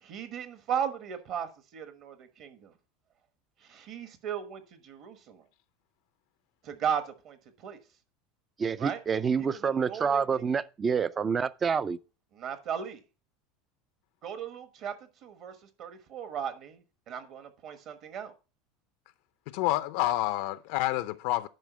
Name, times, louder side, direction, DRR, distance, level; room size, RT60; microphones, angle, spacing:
voice 1, 0.0-2.7 3.7-5.4 6.6-7.4 7.6-7.8 8.8-9.0 9.4-10.2 12.3-13.0 14.2-14.9 15.2-15.5 15.8-16.8 17.1-18.3, right 8 dB, 40° right, 1.2 m, -36 dB
voice 2, 8.6-12.0, right 6 dB, 20° right, 0.4 m, -28 dB
voice 3, 19.5-21.5, left 16 dB, 60° left, 0.5 m, -28 dB
11.0 x 4.9 x 6.0 m
supercardioid pair, 160°, 0 cm